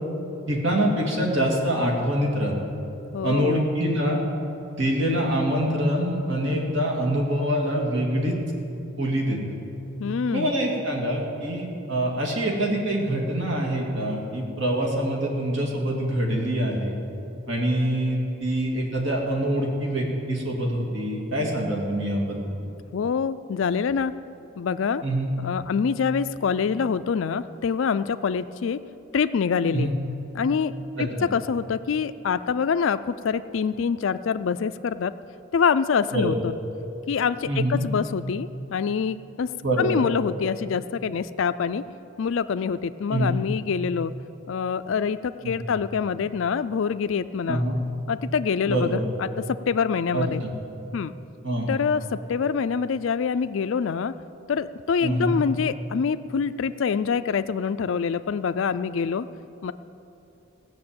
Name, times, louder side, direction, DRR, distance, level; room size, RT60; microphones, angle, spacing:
voice 1, 0.5-2.5 3.2-4.2 4.8-8.4 9.0-9.4 10.3-17.0 17.5-22.4 25.0-25.3 29.7-29.9 31.0-31.1 36.1-36.4 37.5-37.8 39.6-40.0 43.1-43.4 45.4-45.5 47.5-47.8 48.7-49.1 50.1-50.5 51.4-51.7 55.0-55.4, right 1 dB, 65° right, -1 dB, 2.2 m, -25 dB
voice 2, 3.1-3.7 10.0-10.5 22.9-24.1 24.6-25.0 25.4-28.8 29.1-29.9 30.3-30.7 31.0-35.1 35.5-36.5 37.1-39.5 39.8-41.8 42.2-44.1 44.5-47.6 48.1-50.4 50.9-51.1 51.7-54.1 54.5-59.3 59.6-59.7, left 6 dB, 70° left, 12 dB, 0.4 m, -25 dB
16.0 x 6.7 x 8.7 m, 2.8 s
head